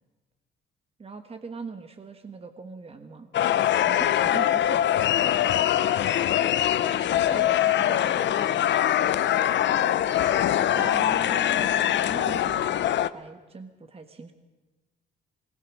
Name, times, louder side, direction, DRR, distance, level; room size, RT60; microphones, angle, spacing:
voice 1, 1.0-3.3 3.9-5.8 7.0-8.1 10.7-12.8 13.0-14.3, right 4 dB, 30° right, 7 dB, 1.4 m, -41 dB
sound 1, 3.3-13.1, left 11 dB, 65° left, 0.7 m, -23 dB
voice 2, 6.5-10.7, equal, 85° right, -1 dB, 6.3 m, -44 dB
21.0 x 19.5 x 6.4 m, 1.2 s
cardioid pair, 90°, 20 cm